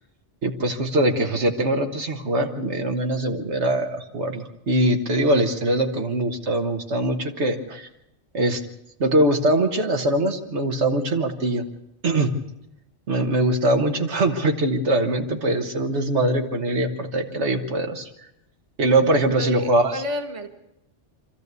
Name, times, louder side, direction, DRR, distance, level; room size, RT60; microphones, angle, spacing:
voice 1, 0.4-7.9 8.3-8.6 9.0-11.6 12.0-12.3 13.1-18.1 18.8-20.0, right 1 dB, 75° right, 4 dB, 1.7 m, -22 dB
voice 2, 19.4-20.6, left 1 dB, 30° right, 6 dB, 1.4 m, -30 dB
25.0 x 13.5 x 8.2 m, 0.87 s
omnidirectional pair, 1.2 m